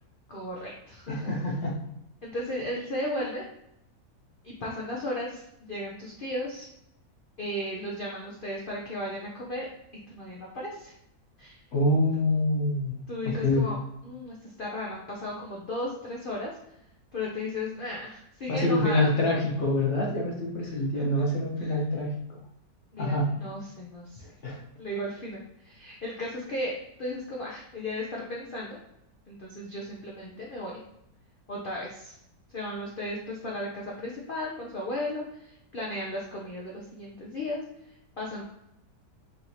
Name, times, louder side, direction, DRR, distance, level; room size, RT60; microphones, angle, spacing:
voice 1, 0.3-1.3 2.2-3.4 4.4-6.7 7.4-9.7 10.1-10.9 11.4-11.6 13.1-13.8 14.0-16.5 17.1-19.1 20.7-21.2 21.6-21.8 22.9-24.2 24.8-28.8 29.3-30.7 31.5-32.1 32.5-37.6 38.2-38.4, left 1 dB, 85° left, -3 dB, 0.4 m, -35 dB
voice 2, 1.1-1.8 11.7-12.9 13.3-13.7 18.5-22.4 23.0-23.3 24.4-24.6, left 1 dB, 50° left, -2 dB, 1.1 m, -26 dB
4.3 x 3.1 x 2.8 m, 0.80 s
omnidirectional pair, 1.9 m